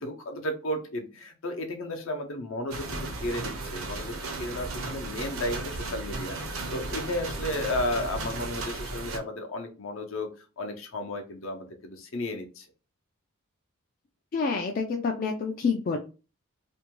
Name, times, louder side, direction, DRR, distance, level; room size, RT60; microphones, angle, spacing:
voice 1, 0.0-10.3 10.6-12.7, left 1 dB, 70° left, 4 dB, 0.7 m, -33 dB
sound 1, 2.7-9.2, right 2 dB, 80° right, 0.7 m, -35 dB
voice 2, 14.3-16.0, left 4 dB, 45° left, 2 dB, 0.3 m, -28 dB
2.6 x 2.2 x 2.9 m, 0.32 s
head